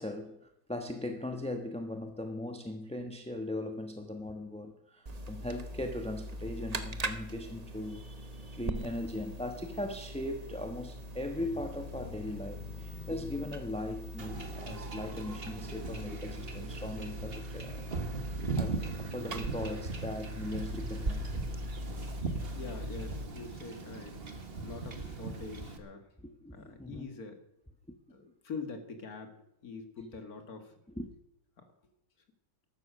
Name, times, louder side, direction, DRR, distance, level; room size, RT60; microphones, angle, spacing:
voice 1, 0.0-17.9 18.2-21.3 26.2-27.1 27.9-28.0 30.0-30.1 30.9-31.1, left 1 dB, 5° left, 5 dB, 0.7 m, -39 dB
sound 1, 5.1-23.3, right 1 dB, 45° right, 0.5 m, -41 dB
sound 2, 10.8-15.8, left 8 dB, 75° left, 1.6 m, -51 dB
Wind / Ocean / Boat Water vehicle, 14.2-25.8, right 3 dB, 30° right, 1.6 m, -40 dB
voice 2, 22.6-24.4 24.6-26.1 26.5-27.4 28.1-29.4 29.6-30.7 31.6-31.7, left 4 dB, 45° left, 6 dB, 2.3 m, -44 dB
14.0 x 12.0 x 6.4 m, 0.82 s
omnidirectional pair, 2.2 m